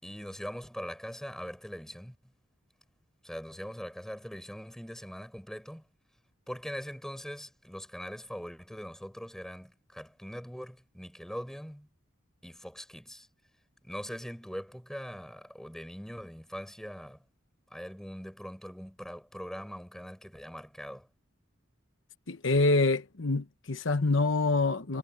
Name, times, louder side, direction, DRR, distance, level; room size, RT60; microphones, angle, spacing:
voice 1, 0.0-2.1 3.2-5.8 6.5-11.9 12.4-13.3 13.8-17.2 17.7-21.1, equal, ahead, 7.2 m, -42 dB
voice 2, 22.3-25.0, left 3 dB, 70° left, 1.0 m, -26 dB
head